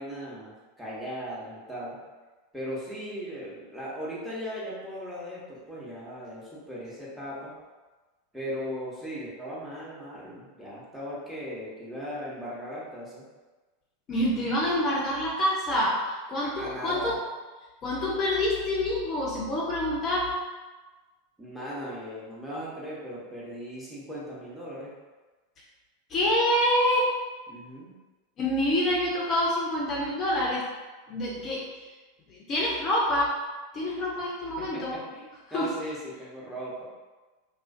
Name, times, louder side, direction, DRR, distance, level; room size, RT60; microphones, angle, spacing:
voice 1, 0.0-2.0 2.5-7.5 8.3-13.2 16.4-17.2 21.4-24.9 27.5-28.0 34.6-35.3 35.5-36.8, equal, 5° right, -8 dB, 0.9 m, -38 dB
voice 2, 14.1-17.2 17.8-20.3 26.1-27.0 28.4-30.6 31.1-31.9 32.3-33.3 33.7-35.0 35.5-35.7, left 1 dB, 35° left, -5 dB, 0.5 m, -27 dB
2.4 x 2.3 x 2.5 m, 1.3 s
figure-of-eight pair, 85°, 0 cm